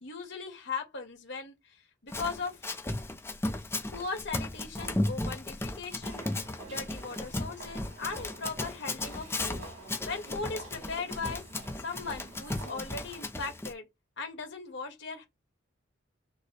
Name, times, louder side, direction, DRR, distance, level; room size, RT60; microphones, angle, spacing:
voice 1, 0.0-1.5 2.0-2.6 3.9-6.2 6.7-9.6 10.0-13.9 14.2-15.2, left 4 dB, 65° left, 1.5 m, -38 dB
Run, 2.1-13.7, left 2 dB, 15° left, 0.5 m, -35 dB
sound 1, 6.0-13.3, right 3 dB, 85° right, 3.2 m, -50 dB
6.1 x 2.2 x 3.2 m
head